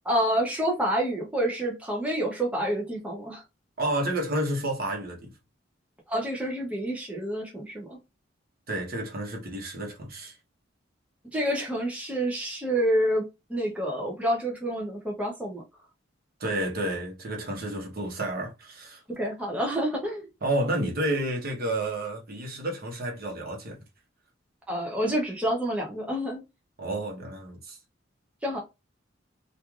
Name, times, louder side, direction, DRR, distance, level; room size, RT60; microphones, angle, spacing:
voice 1, 0.0-3.4 6.1-8.0 11.3-15.6 19.1-20.3 24.7-26.4 28.4-28.6, equal, 5° right, 0.6 m, -28 dB
voice 2, 3.8-5.3 8.7-10.4 16.4-19.0 20.4-23.8 26.8-27.8, right 1 dB, 50° right, 0.9 m, -30 dB
3.1 x 2.5 x 2.3 m
head